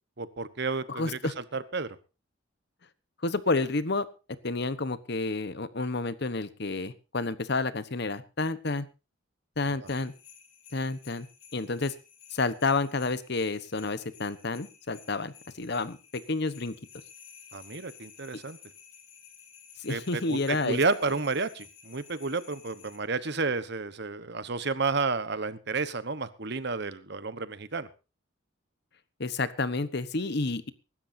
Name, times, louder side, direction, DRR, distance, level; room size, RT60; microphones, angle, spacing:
voice 1, 0.2-2.0 9.8-9.9 17.5-18.6 19.9-27.9, right 4 dB, 55° right, 14 dB, 1.1 m, -31 dB
voice 2, 0.9-1.3 3.2-4.1 4.4-8.9 9.6-10.1 10.7-11.3 11.5-11.9 12.3-16.0 16.3-16.7 19.8-20.8 29.2-30.7, left 3 dB, 55° left, 14 dB, 1.1 m, -30 dB
sound 1, 9.8-23.0, left 7 dB, 85° left, 6.0 m, -54 dB
24.0 x 12.5 x 2.7 m, 0.31 s
head